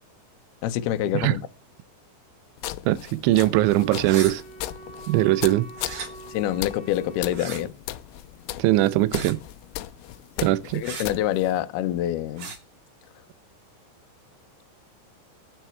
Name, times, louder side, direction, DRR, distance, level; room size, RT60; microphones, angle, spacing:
voice 1, 0.6-1.4 6.3-7.7 10.4-10.5 10.7-12.5, left 12 dB, 70° left, 2.5 m, -26 dB
sound 1, 2.6-11.6, left 15 dB, 85° left, 3.6 m, -38 dB
voice 2, 2.9-4.4 5.1-5.7 8.6-9.4 10.4-10.8, right 16 dB, 75° right, 3.1 m, -21 dB
Wind instrument woodwind instrument, 3.4-7.7, right 3 dB, 40° left, 0.9 m, -45 dB
sound 2, 4.0-4.3 5.7-6.1 7.3-7.6 9.1-9.4 10.8-11.1 12.4-12.6, right 5 dB, 45° right, 4.5 m, -35 dB
19.5 x 8.4 x 4.6 m
omnidirectional pair, 5.8 m